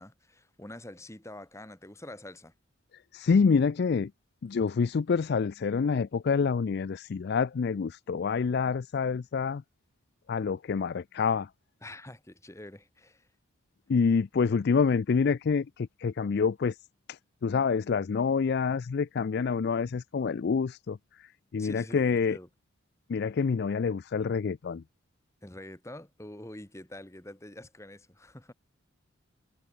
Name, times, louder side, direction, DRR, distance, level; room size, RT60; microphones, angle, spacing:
voice 1, 0.0-2.5 11.8-13.3 21.6-22.5 25.4-28.5, left 1 dB, 15° left, 1.6 m, -46 dB
voice 2, 3.1-4.1 4.4-9.6 10.3-11.5 13.9-16.8 17.1-22.4 23.1-24.8, left 5 dB, 50° left, 0.4 m, -27 dB
head